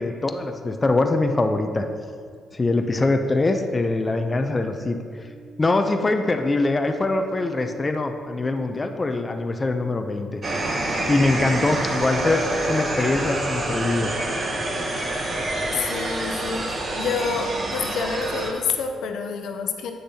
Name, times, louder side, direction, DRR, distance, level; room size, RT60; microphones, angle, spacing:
voice 1, 0.0-1.9 2.5-5.0 5.6-10.4 11.1-14.4 15.0-15.1, left 2 dB, 25° left, 5 dB, 0.5 m, -23 dB
sound 1, 4.1-10.1, right 3 dB, 65° right, 1.7 m, -46 dB
sound 2, 10.4-18.5, right 1 dB, 45° right, 1.0 m, -27 dB
voice 2, 15.7-19.9, left 6 dB, 75° left, 5 dB, 0.5 m, -28 dB
7.9 x 6.5 x 2.8 m, 2.1 s
cardioid pair, 90°, 0 cm